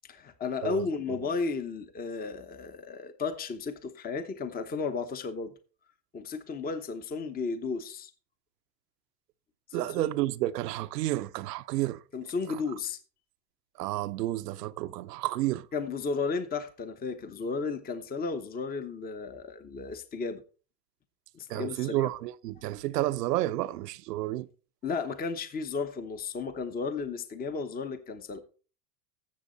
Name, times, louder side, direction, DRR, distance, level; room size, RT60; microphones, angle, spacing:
voice 1, 0.1-5.5 6.1-8.1 9.8-10.1 12.1-13.0 15.7-20.4 21.3-22.1 24.8-28.4, left 4 dB, 20° left, 0.9 m, -34 dB
voice 2, 9.7-12.0 13.8-15.7 21.5-24.5, right 16 dB, 75° right, 0.8 m, -31 dB
13.5 x 7.4 x 4.0 m
hypercardioid pair, 110°, 48 cm